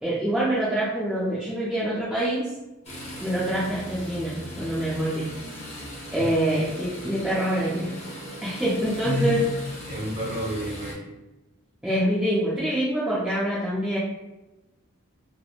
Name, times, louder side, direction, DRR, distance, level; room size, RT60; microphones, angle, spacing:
voice 1, 0.0-2.5 3.2-5.3 6.1-7.9 8.4-9.4 11.8-14.0, right 1 dB, 5° right, -10 dB, 0.4 m, -25 dB
sound 1, 2.8-10.9, equal, 30° left, 0.7 m, -39 dB
voice 2, 9.0-9.5 9.9-11.1, left 1 dB, 35° right, -6 dB, 0.9 m, -29 dB
2.9 x 2.0 x 2.3 m, 1.0 s
head